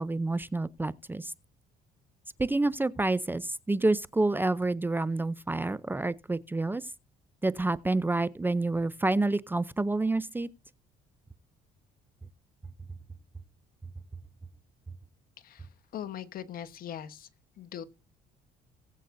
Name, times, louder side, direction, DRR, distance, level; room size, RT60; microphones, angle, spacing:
voice 1, 0.0-1.3 2.4-6.9 7.4-10.5, right 2 dB, 10° right, 0.6 m, -28 dB
voice 2, 15.4-17.3 17.6-17.8, left 10 dB, 60° left, 1.2 m, -41 dB
19.5 x 8.2 x 2.6 m
cardioid pair, 110°, 17 cm